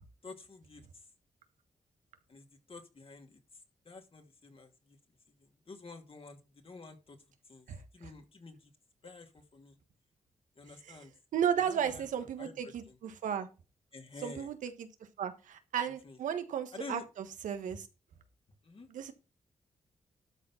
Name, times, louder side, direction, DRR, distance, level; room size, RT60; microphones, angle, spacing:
voice 1, 0.2-1.1 2.3-3.4 3.8-5.0 5.4-7.7 7.9-8.7 9.0-9.8 10.6-11.1 11.6-13.0 13.9-14.6 15.8-16.2 16.7-17.1 17.6-17.8 18.6-18.9, left 3 dB, 45° left, 4 dB, 2.9 m, -50 dB
voice 2, 11.3-13.5 14.2-14.9 15.2-17.9 18.9-19.1, right 8 dB, 85° right, 9 dB, 1.4 m, -34 dB
12.5 x 4.4 x 5.8 m, 0.30 s
supercardioid pair, 50°, 13 cm